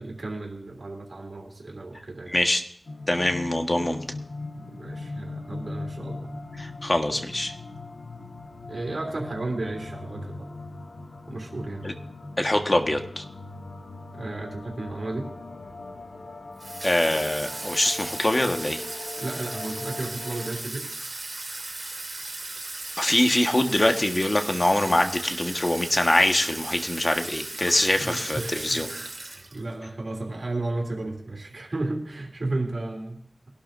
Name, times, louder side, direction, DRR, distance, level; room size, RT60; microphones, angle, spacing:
voice 1, 0.0-2.4 4.7-6.3 8.7-10.5 11.3-11.9 14.2-15.3 19.2-20.9 27.9-33.5, right 2 dB, 70° right, 1 dB, 3.0 m, -33 dB
voice 2, 2.3-2.6 3.1-4.0 6.6-7.5 11.8-11.9 12.4-13.2 16.8-18.8 23.0-28.9, left 1 dB, 40° left, 5 dB, 1.5 m, -24 dB
sound 1, 2.8-20.5, left 2 dB, 85° left, 1.5 m, -40 dB
Water tap faucet / Sink (filling or washing), 16.6-29.7, right 2 dB, 55° right, 2.1 m, -37 dB
22.0 x 12.0 x 2.7 m, 0.62 s
wide cardioid pair, 45°, 0 cm